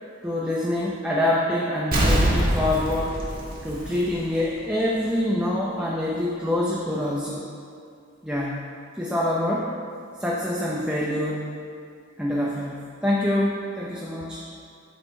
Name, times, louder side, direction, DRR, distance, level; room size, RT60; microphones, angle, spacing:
voice 1, 0.2-3.2 3.6-7.4 8.2-8.6 9.0-9.7 10.2-11.5 12.2-14.4, left 1 dB, 5° right, -5 dB, 0.7 m, -25 dB
Explosion, 1.9-4.5 4.9-5.0, right 1 dB, 50° right, 1.5 m, -24 dB
12.0 x 4.2 x 4.4 m, 2.3 s
head